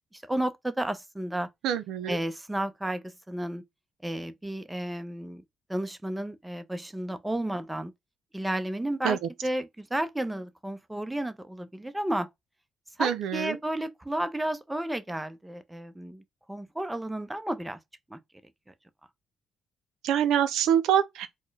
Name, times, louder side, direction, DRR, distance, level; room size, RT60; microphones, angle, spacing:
voice 1, 0.1-1.5 2.1-3.6 4.0-5.4 5.7-7.9 8.3-12.3 13.0-16.2 16.5-17.8 18.1-18.2, right 1 dB, 10° right, 0.6 m, -32 dB
voice 2, 1.6-2.2 9.0-9.2 13.0-13.6 20.0-21.3, right 9 dB, 85° right, 0.4 m, -25 dB
4.2 x 2.1 x 3.2 m
cardioid pair, 90°, 0 cm